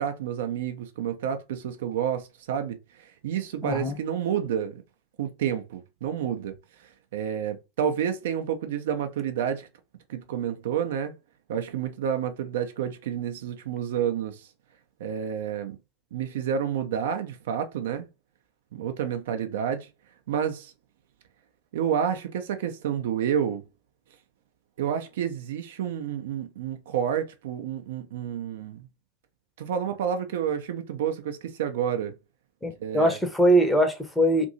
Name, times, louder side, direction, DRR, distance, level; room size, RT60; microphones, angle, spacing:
voice 1, 0.0-4.8 5.2-6.5 6.8-9.7 10.1-11.1 11.5-14.5 15.0-15.8 16.1-18.1 18.7-19.9 20.3-20.7 21.7-23.6 24.8-28.9 29.6-32.1 32.8-33.2, right 8 dB, 55° right, 0.4 m, -29 dB
voice 2, 3.6-3.9 32.6-34.5, right 1 dB, 5° left, 0.6 m, -22 dB
2.6 x 2.6 x 2.6 m
figure-of-eight pair, 90°, 0 cm